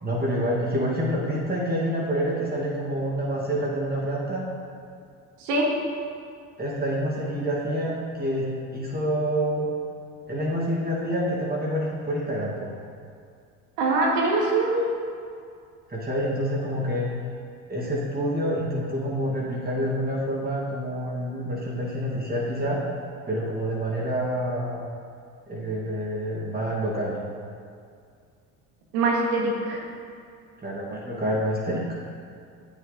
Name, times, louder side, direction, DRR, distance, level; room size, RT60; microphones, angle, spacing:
voice 1, 0.0-4.4 6.6-9.7 10.3-12.7 15.9-17.1 17.7-22.8 23.3-24.9 25.5-27.1 30.6-31.9, equal, 20° right, -5 dB, 2.4 m, -27 dB
voice 2, 13.8-14.9 28.9-29.8, right 2 dB, 65° right, -2 dB, 2.1 m, -23 dB
8.8 x 8.0 x 4.1 m, 2.3 s
hypercardioid pair, 65°, 42 cm